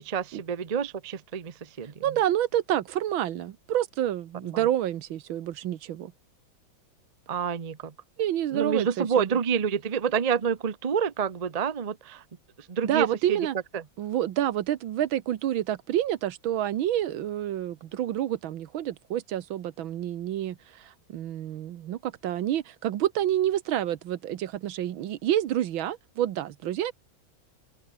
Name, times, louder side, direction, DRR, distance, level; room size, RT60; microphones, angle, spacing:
voice 1, 0.0-2.2 4.4-4.7 7.3-7.9 8.5-12.2 12.6-13.4 13.7-13.8, right 7 dB, 50° right, 0.4 m, -28 dB
voice 2, 2.0-6.1 8.2-9.1 12.8-13.6 14.0-26.9, right 11 dB, 80° right, 1.8 m, -28 dB
open air
omnidirectional pair, 2.2 m